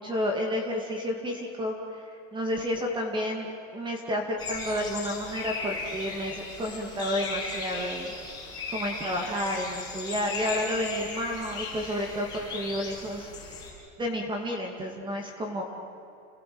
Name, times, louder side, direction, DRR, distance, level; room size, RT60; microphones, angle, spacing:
voice 1, 0.0-2.0 2.3-8.4 8.7-13.3 14.0-15.6, equal, 10° right, 2 dB, 2.4 m, -31 dB
sound 1, 4.4-13.7, left 4 dB, 10° left, 7.0 m, -37 dB
30.0 x 19.0 x 7.9 m, 2.7 s
supercardioid pair, 160°, 38 cm